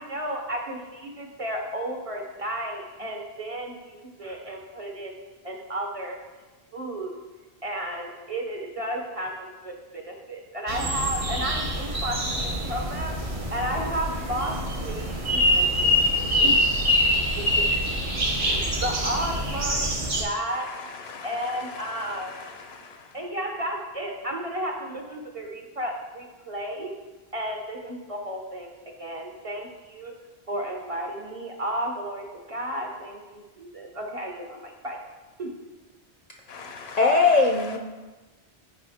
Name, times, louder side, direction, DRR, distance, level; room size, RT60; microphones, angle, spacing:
voice 1, 0.0-5.1 5.4-6.2 6.7-7.1 7.6-13.2 13.5-14.6 14.8-15.9 16.1-16.5 17.3-17.4 18.3-19.9 20.2-20.7 21.2-22.4 23.1-26.9 27.3-28.7 29.0-30.1 30.5-35.0 35.4-35.5, right 1 dB, 35° right, 1 dB, 0.8 m, -33 dB
sound 1, 10.7-20.2, equal, 50° right, 1.4 m, -25 dB
voice 2, 20.5-23.2 36.5-37.0, left 5 dB, 75° left, 5 dB, 1.0 m, -42 dB
voice 3, 37.0-37.8, left 4 dB, 50° left, 1 dB, 0.5 m, -20 dB
8.9 x 4.8 x 3.5 m, 1.2 s
omnidirectional pair, 1.1 m